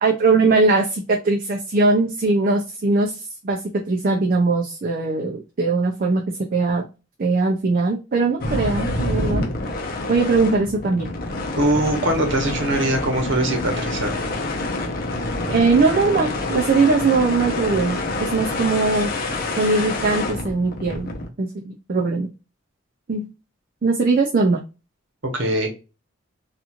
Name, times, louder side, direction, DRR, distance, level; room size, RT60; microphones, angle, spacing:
voice 1, 0.0-3.6 3.9-6.2 6.5-6.8 7.2-9.5 10.1-11.1 15.5-19.1 19.6-21.1 21.4-22.3 23.1-23.2 23.8-24.6, right 3 dB, 45° right, 1 dB, 0.4 m, -20 dB
sound 1, 8.4-21.3, left 2 dB, 45° left, 0.6 m, -27 dB
voice 2, 11.6-14.2 25.3-25.7, right 1 dB, 65° right, 3 dB, 1.0 m, -22 dB
3.0 x 2.4 x 2.4 m, 0.30 s
head